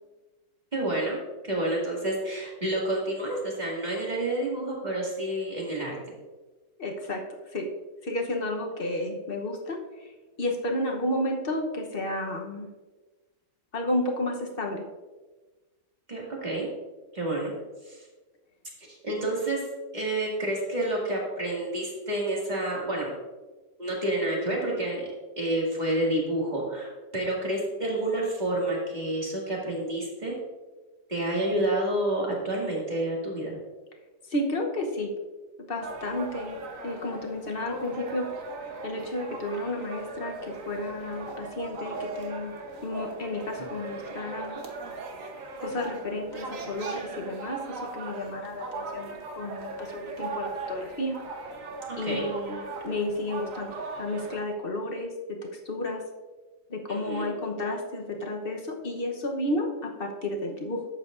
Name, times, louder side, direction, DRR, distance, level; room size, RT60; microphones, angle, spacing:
voice 1, 0.7-1.2 1.4-6.0 16.1-16.7 17.1-17.5 17.9-18.0 18.9-19.7 19.9-23.1 23.8-25.1 25.4-30.4 31.1-33.6 52.0-52.3 56.9-57.3, right 1 dB, 25° right, -3 dB, 2.2 m, -29 dB
voice 2, 6.8-7.7 8.0-10.1 10.4-12.7 13.7-14.9 34.3-35.1 35.6-38.3 38.8-42.6 42.8-44.6 45.6-51.2 52.0-56.0 56.7-60.9, left 1 dB, 40° left, 2 dB, 1.0 m, -32 dB
sound 1, 35.8-54.4, right 3 dB, 55° right, 1.4 m, -39 dB
11.5 x 8.0 x 2.5 m, 1.3 s
omnidirectional pair, 1.8 m